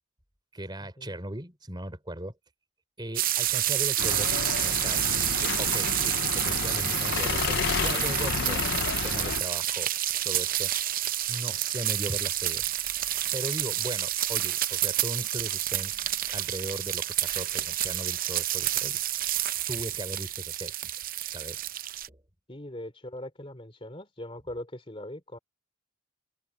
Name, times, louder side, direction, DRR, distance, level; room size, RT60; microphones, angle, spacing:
voice 1, 0.5-2.3 3.0-4.3 4.6-8.7 9.0-9.9 10.2-10.7 11.3-12.6 13.3-19.0 19.7-20.7 21.3-21.6 22.1-22.2, right 1 dB, 20° right, 3.6 m, -38 dB
sound 1, 3.2-22.1, right 13 dB, 40° right, 0.6 m, -29 dB
sound 2, 4.0-9.4, left 6 dB, 50° left, 0.5 m, -31 dB
voice 2, 22.5-25.4, left 1 dB, 25° left, 3.2 m, -40 dB
head